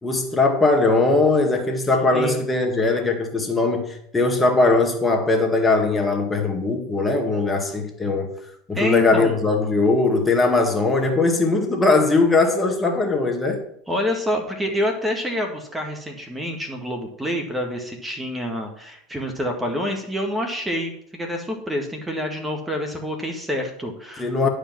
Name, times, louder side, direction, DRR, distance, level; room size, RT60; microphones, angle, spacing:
voice 1, 0.0-8.3 8.7-13.6 24.2-24.5, left 3 dB, 15° left, 3 dB, 2.0 m, -20 dB
voice 2, 8.7-9.4 13.9-24.5, equal, 10° right, 3 dB, 1.8 m, -27 dB
11.0 x 5.2 x 6.0 m, 0.70 s
hypercardioid pair, 95°, 0 cm